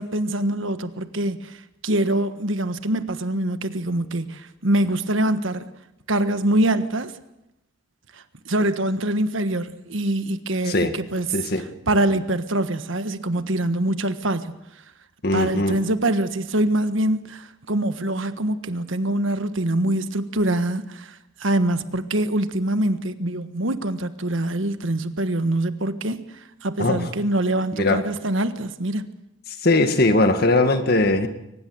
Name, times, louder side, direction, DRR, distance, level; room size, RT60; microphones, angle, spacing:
voice 1, 0.0-5.7 6.1-7.1 8.1-11.3 11.9-14.5 15.3-29.0, right 1 dB, 75° right, 1.4 m, -24 dB
voice 2, 11.3-11.7 15.2-15.8 26.8-27.1 27.7-28.0 29.6-31.3, left 2 dB, 50° left, 1.9 m, -20 dB
23.0 x 20.0 x 7.9 m
head